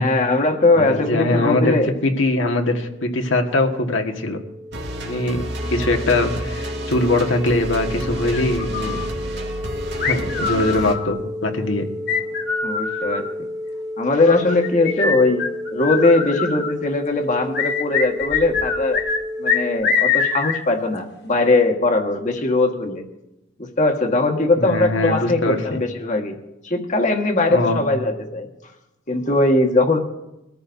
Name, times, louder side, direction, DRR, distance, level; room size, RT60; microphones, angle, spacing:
voice 1, 0.0-1.9 12.6-13.3 14.0-15.5 15.7-19.0 19.4-23.0 23.6-26.4 26.6-28.5 29.1-30.0, left 2 dB, 40° left, 3 dB, 1.6 m, -20 dB
voice 2, 0.7-1.8 2.0-4.4 5.0-5.4 5.7-9.0 10.0-11.9 24.6-25.8 27.5-27.9, left 2 dB, 80° left, 3 dB, 1.6 m, -22 dB
sound 1, 2.9-19.8, left 1 dB, 5° right, 1.0 m, -32 dB
sound 2, 4.7-10.9, right 1 dB, 60° right, 1.9 m, -30 dB
sound 3, 8.3-9.1 10.0-11.2 12.1-13.3 14.3-16.7 17.5-19.2 19.5-20.6, left 6 dB, 60° left, 1.3 m, -23 dB
23.0 x 14.0 x 2.7 m, 0.95 s
head